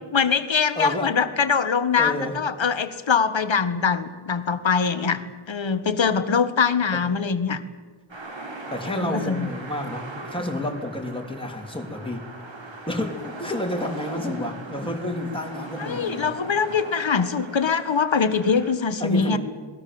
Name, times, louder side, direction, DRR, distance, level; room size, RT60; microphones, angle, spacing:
voice 1, 0.1-5.2 5.5-7.6 8.9-9.5 15.8-19.4, left 5 dB, 65° left, 11 dB, 1.7 m, -23 dB
voice 2, 0.8-1.1 2.0-2.4 6.9-7.0 8.7-12.3 12.7-16.3 19.0-19.4, left 1 dB, 10° left, 1 dB, 3.6 m, -30 dB
sound 1, 8.1-18.7, right 2 dB, 65° right, 4.1 m, -39 dB
27.5 x 20.0 x 7.9 m, 1.5 s
wide cardioid pair, 95°, 49 cm